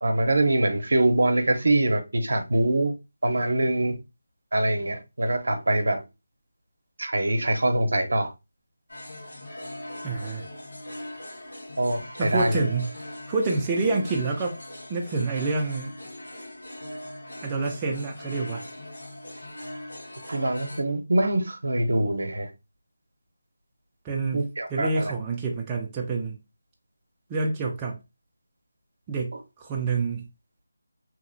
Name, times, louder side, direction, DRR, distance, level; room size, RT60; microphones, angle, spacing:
voice 1, 0.0-2.9 3.2-4.0 4.5-6.0 7.0-8.3 11.8-12.6 20.3-22.5 24.3-25.1, right 1 dB, 75° right, 0.6 m, -24 dB
sound 1, 8.9-20.8, left 1 dB, 75° left, 1.2 m, -40 dB
voice 2, 10.0-10.4 12.2-12.9 13.3-14.6 14.9-15.9 17.4-18.6 24.0-24.4 24.7-26.4 27.3-28.0 29.1-30.3, right 3 dB, 15° right, 0.3 m, -27 dB
2.8 x 2.0 x 2.5 m
figure-of-eight pair, 170°, 0 cm